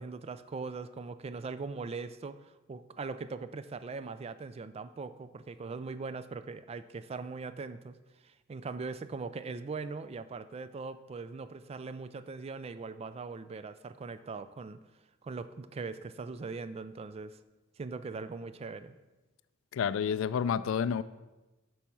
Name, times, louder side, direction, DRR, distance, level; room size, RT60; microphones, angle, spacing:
voice 1, 0.0-8.0 8.2-14.8 15.2-17.4 17.8-19.0, right 4 dB, 30° right, 0.3 m, -40 dB
voice 2, 19.7-21.0, left 7 dB, 70° left, 0.3 m, -29 dB
7.3 x 4.7 x 5.4 m
head